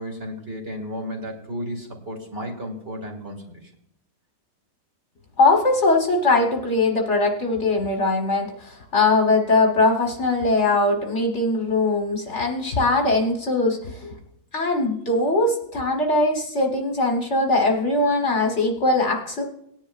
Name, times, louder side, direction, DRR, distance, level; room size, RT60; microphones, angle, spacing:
voice 1, 0.0-3.6, equal, 35° right, 1 dB, 2.1 m, -33 dB
voice 2, 5.4-14.2 14.5-19.4, left 2 dB, 45° left, 2 dB, 1.3 m, -21 dB
18.0 x 10.0 x 2.4 m, 0.76 s
omnidirectional pair, 2.0 m